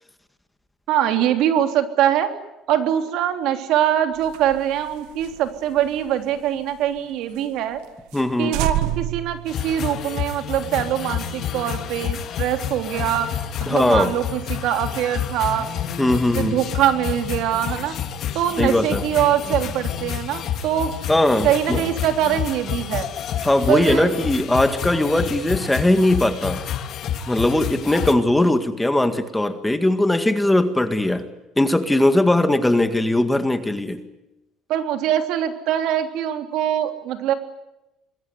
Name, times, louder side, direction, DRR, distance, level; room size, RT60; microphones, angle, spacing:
voice 1, 0.9-2.3 2.7-7.8 8.4-13.3 13.6-15.7 16.1-17.9 18.3-20.9 21.4-23.1 23.7-24.1 34.7-37.3, right 11 dB, 70° right, 7 dB, 3.4 m, -23 dB
sound 1, 4.2-7.0 7.3-7.4 7.8-7.9 8.1-8.3 8.5-10.2, right 12 dB, 90° right, 2.0 m, -29 dB
voice 2, 8.1-8.6 13.7-14.1 16.0-16.6 18.6-19.0 21.1-21.8 23.4-26.6 27.3-31.3 31.6-34.0, left 1 dB, 5° left, 9 dB, 1.9 m, -19 dB
sound 2, 9.5-28.1, left 9 dB, 50° left, 2.3 m, -29 dB
26.0 x 22.0 x 9.7 m, 0.96 s
cardioid pair, 140°, 0 cm